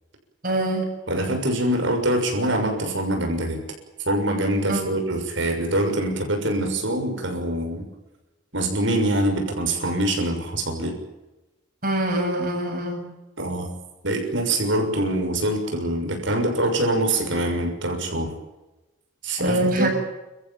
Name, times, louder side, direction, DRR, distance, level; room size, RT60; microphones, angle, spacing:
voice 1, 0.4-0.9 4.7-4.8 11.8-13.1 19.4-19.9, right 1 dB, 45° right, 1 dB, 7.9 m, -24 dB
voice 2, 1.1-3.6 4.1-7.9 8.5-11.0 13.4-13.7 14.0-18.3 19.2-19.9, right 1 dB, 65° right, 3 dB, 6.6 m, -24 dB
29.5 x 15.0 x 9.2 m, 1.0 s
head